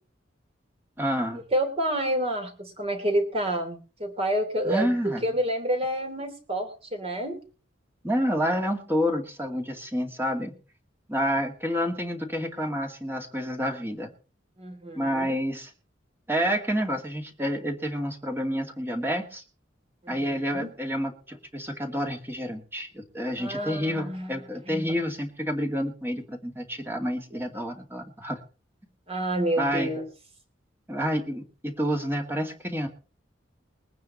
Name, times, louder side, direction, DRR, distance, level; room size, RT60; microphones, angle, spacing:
voice 1, 1.0-1.4 4.6-5.2 8.0-10.5 11.1-14.1 15.0-15.7 16.3-19.4 20.1-28.4 29.6-30.0 30.9-32.9, equal, 10° right, 4 dB, 2.3 m, -29 dB
voice 2, 1.5-7.4 14.6-15.4 20.0-20.8 23.4-25.0 29.1-30.1, right 1 dB, 30° right, 6 dB, 3.1 m, -29 dB
21.5 x 9.4 x 4.3 m, 0.37 s
head